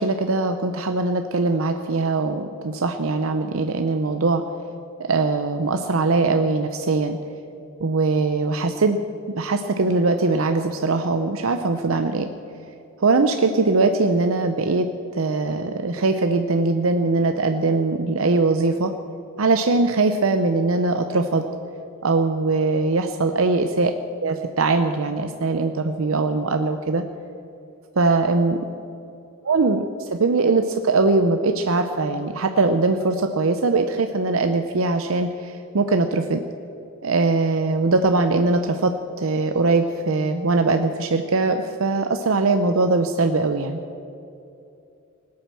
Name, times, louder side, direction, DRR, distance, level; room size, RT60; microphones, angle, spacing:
voice 1, 0.0-4.4 5.0-7.2 7.8-9.0 9.3-12.3 13.0-14.9 15.1-18.9 19.4-21.4 22.0-23.9 24.2-27.0 28.0-28.6 29.5-29.9 30.1-36.4 37.0-43.8, right 3 dB, 75° right, 7 dB, 0.7 m, -21 dB
19.5 x 8.6 x 7.5 m, 2.8 s
head